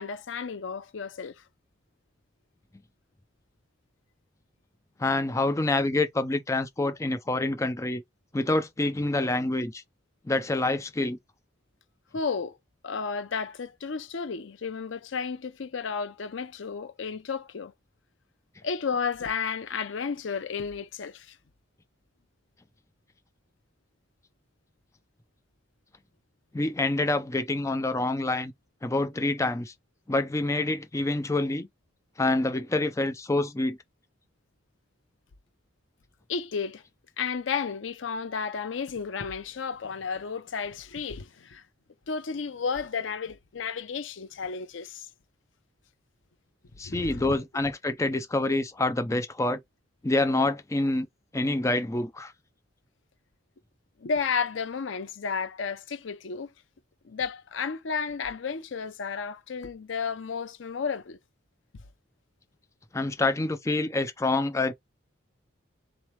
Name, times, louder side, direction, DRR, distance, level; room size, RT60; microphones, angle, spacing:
voice 1, 0.0-1.4 12.1-12.6 12.8-17.7 18.6-21.4 36.3-36.8 37.2-41.6 42.1-45.1 46.8-47.3 54.0-56.5 57.0-61.2, left 5 dB, 85° left, 0.6 m, -32 dB
voice 2, 5.0-8.0 8.3-9.8 10.3-11.2 26.5-28.5 28.8-29.7 30.1-31.7 32.2-33.8 46.8-49.6 50.0-51.1 51.3-52.3 62.9-64.7, left 2 dB, 15° left, 0.4 m, -27 dB
4.0 x 3.0 x 3.1 m
head